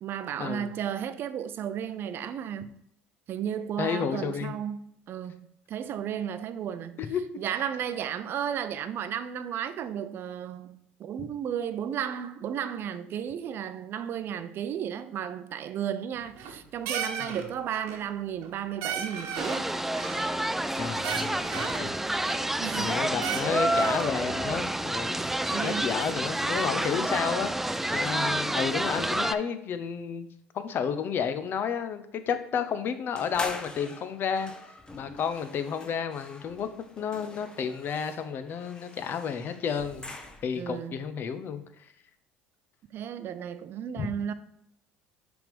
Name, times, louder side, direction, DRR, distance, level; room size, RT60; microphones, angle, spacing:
voice 1, 0.0-2.8 3.3-19.7 22.6-23.0 25.5-25.9 40.5-40.9 42.9-44.3, right 9 dB, 55° right, 0.6 m, -34 dB
voice 2, 3.8-4.6 7.1-7.4 17.2-17.4 20.7-22.0 22.8-25.3 25.6-30.3 30.5-34.5 34.9-36.7 37.0-40.1 40.4-41.6 44.0-44.1, left 7 dB, 50° left, 0.8 m, -31 dB
sound 1, 16.2-16.6 16.9-17.4 17.7-18.1 18.4-18.5 18.8-19.7 19.9-20.7 21.0-21.9 22.3-22.9 23.2-24.1, right 7 dB, 75° right, 1.1 m, -35 dB
sound 2, 19.4-29.3, right 1 dB, 5° right, 0.3 m, -29 dB
sound 3, 33.2-40.7, left 2 dB, 15° left, 0.9 m, -43 dB
6.1 x 3.6 x 5.2 m
supercardioid pair, 85°, 5 cm